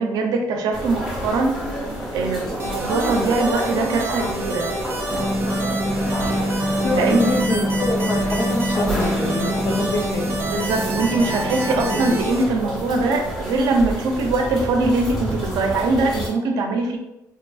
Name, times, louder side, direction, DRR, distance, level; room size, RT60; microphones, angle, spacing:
voice 1, 0.0-1.6 2.1-4.7 6.9-7.3 8.4-8.5 10.5-17.0, right 3 dB, 85° right, 3 dB, 0.5 m, -22 dB
sound 1, 0.7-16.3, equal, 5° left, 0.9 m, -29 dB
sound 2, 2.6-12.4, right 1 dB, 35° right, 0.5 m, -29 dB
sound 3, 5.1-12.2, equal, 85° left, 1.5 m, -26 dB
voice 2, 6.8-10.3, left 2 dB, 40° left, 2 dB, 0.5 m, -25 dB
2.9 x 2.4 x 2.3 m, 0.86 s
cardioid pair, 145°, 7 cm